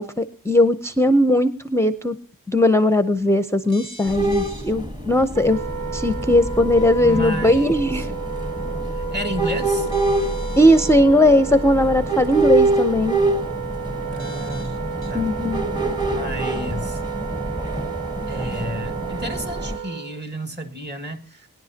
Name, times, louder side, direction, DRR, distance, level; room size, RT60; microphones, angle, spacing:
voice 1, 0.0-2.2 2.5-5.6 5.9-8.1 10.6-13.2 15.1-15.6, left 1 dB, 10° left, 0.6 m, -18 dB
sound 1, 3.6-4.7 6.1-6.2 9.8-10.9 12.2-12.3 14.1-15.1 16.0-16.1, equal, 85° right, 1.9 m, -44 dB
sound 2, 4.1-19.8, right 2 dB, 10° right, 1.2 m, -26 dB
Wind instrument woodwind instrument, 5.3-20.2, right 7 dB, 65° right, 0.7 m, -32 dB
voice 2, 7.0-8.1 8.9-9.9 14.1-14.8 15.1-15.3 16.0-17.0 18.3-21.5, equal, 30° right, 1.8 m, -31 dB
23.0 x 10.5 x 2.8 m
wide cardioid pair, 80°, 35 cm